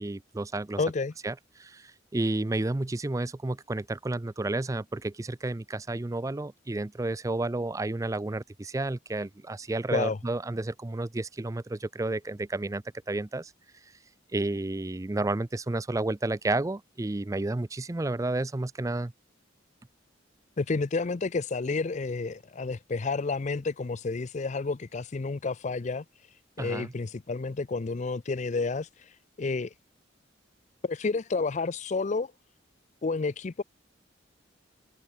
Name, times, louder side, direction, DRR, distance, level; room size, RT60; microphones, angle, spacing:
voice 1, 0.0-0.8 1.2-13.5 14.3-19.1 26.6-26.9, right 2 dB, 15° right, 0.4 m, -31 dB
voice 2, 0.8-1.1 9.9-10.2 20.6-26.0 26.6-29.7 30.8-32.3 33.0-33.6, left 3 dB, 40° left, 0.5 m, -30 dB
head